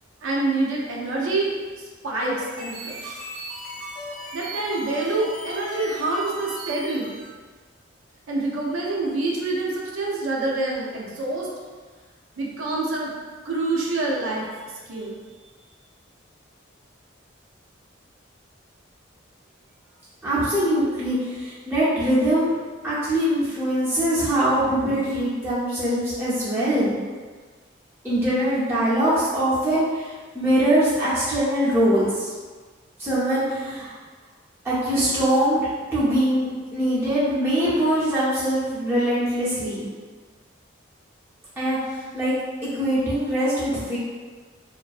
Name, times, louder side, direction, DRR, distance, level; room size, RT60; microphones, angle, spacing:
voice 1, 0.2-3.2 4.3-7.2 8.3-11.5 12.4-13.1 13.4-14.5 14.9-15.5, right 2 dB, 80° right, -3 dB, 0.4 m, -26 dB
sound 1, 2.3-7.3, right 1 dB, 85° left, 1.3 m, -37 dB
voice 2, 20.2-22.5 22.8-26.9 28.0-32.3 33.0-33.9 34.6-35.6 35.9-39.9 41.6-42.3 42.6-44.0, right 1 dB, 10° right, -11 dB, 0.7 m, -22 dB
2.5 x 2.1 x 2.4 m, 1.5 s
head